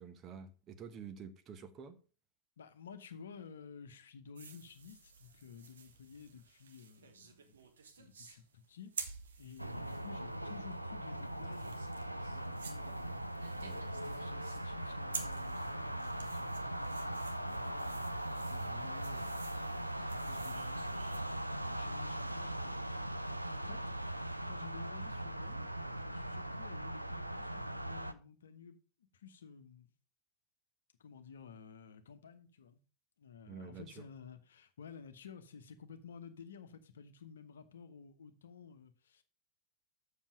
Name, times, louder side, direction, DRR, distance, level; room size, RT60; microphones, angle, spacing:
voice 1, 0.0-2.0 13.6-13.8 33.5-34.0, right 6 dB, 30° right, 1.0 m, -49 dB
voice 2, 2.6-7.5 8.0-8.9 9.4-11.7 12.2-13.2 13.7-23.1 23.5-23.9 24.5-28.8 29.1-29.9 31.0-32.8 33.2-39.2, left 6 dB, 65° left, 1.0 m, -53 dB
sound 1, 4.4-21.2, right 5 dB, 65° right, 1.1 m, -51 dB
sound 2, 9.6-28.1, right 1 dB, 90° right, 0.5 m, -40 dB
7.4 x 6.6 x 5.0 m
figure-of-eight pair, 90°, 0 cm